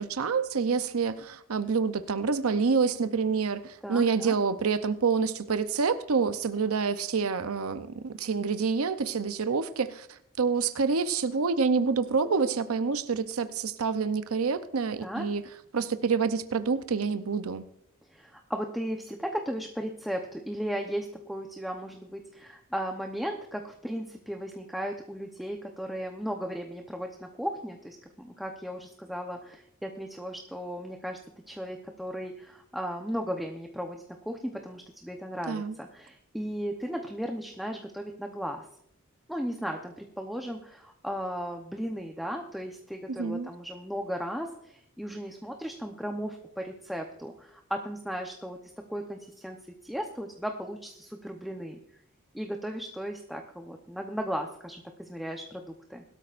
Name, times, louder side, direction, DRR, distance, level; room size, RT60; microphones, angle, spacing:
voice 1, 0.0-15.4 15.7-17.6 35.5-35.7 43.2-43.5, right 5 dB, 80° right, 0.7 m, -27 dB
voice 2, 3.8-4.3 15.0-15.3 18.1-31.2 31.5-38.6 39.3-48.6 48.9-49.6 49.8-51.8 52.3-56.0, equal, ahead, 0.8 m, -36 dB
21.0 x 13.0 x 2.5 m
head